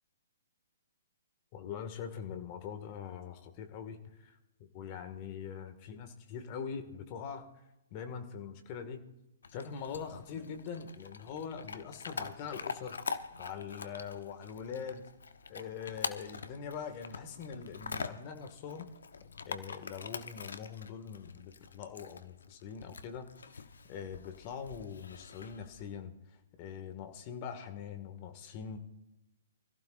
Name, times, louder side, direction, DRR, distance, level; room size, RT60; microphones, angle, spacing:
voice 1, 1.5-4.4 4.7-7.5 7.9-9.0 9.5-13.0 13.4-15.0 15.5-18.9 19.5-23.3 23.5-23.6 23.9-26.1 26.6-28.8, left 7 dB, 35° left, 7 dB, 2.0 m, -43 dB
Chewing mastication / Dog, 9.4-25.9, left 5 dB, 75° left, 1.1 m, -44 dB
25.0 x 15.0 x 2.6 m, 0.97 s
figure-of-eight pair, 125°, 0 cm